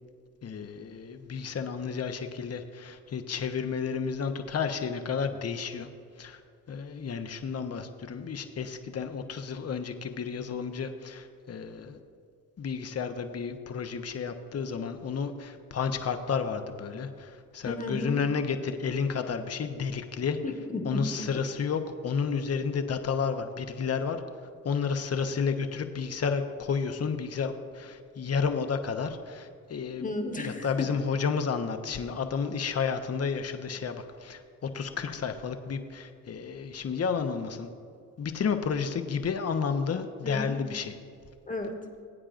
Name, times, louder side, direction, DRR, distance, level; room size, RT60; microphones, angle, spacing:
voice 1, 0.4-5.9 6.2-6.4 6.7-12.0 12.6-20.4 20.8-24.2 24.6-30.0 30.4-37.7 38.2-40.9, left 6 dB, 40° left, 7 dB, 1.0 m, -31 dB
voice 2, 17.7-18.2 20.4-21.1 30.0-30.9 40.2-40.7 41.5-41.8, left 2 dB, 20° left, 4 dB, 1.4 m, -33 dB
18.0 x 8.7 x 2.5 m, 2.3 s
supercardioid pair, 55°, 37 cm